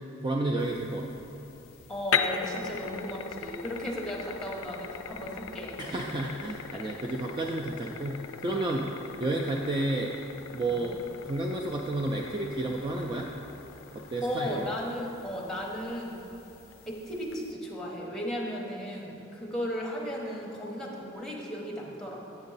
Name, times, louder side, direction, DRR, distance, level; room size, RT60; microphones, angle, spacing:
voice 1, 0.2-1.2 5.8-8.9 9.2-10.1 10.5-13.3 13.9-14.7, right 2 dB, 25° right, 0 dB, 0.3 m, -31 dB
sound 1, 0.6-17.5, left 7 dB, 75° left, 0.4 m, -39 dB
voice 2, 1.9-5.8 6.7-7.0 8.5-8.8 10.7-10.9 13.9-16.2 16.9-22.2, equal, 5° left, -3 dB, 0.9 m, -36 dB
8.0 x 6.2 x 4.0 m, 2.9 s
head